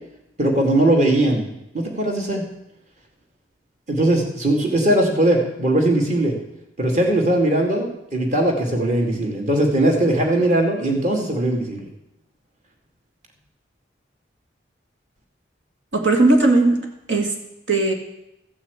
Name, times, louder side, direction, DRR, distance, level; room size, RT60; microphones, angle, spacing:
voice 1, 0.4-1.4 1.7-2.5 3.9-6.3 6.8-11.9, right 1 dB, 40° right, 1 dB, 2.3 m, -19 dB
voice 2, 15.9-17.3 17.7-17.9, right 2 dB, 75° right, 3 dB, 2.0 m, -18 dB
14.0 x 6.2 x 8.1 m, 0.85 s
head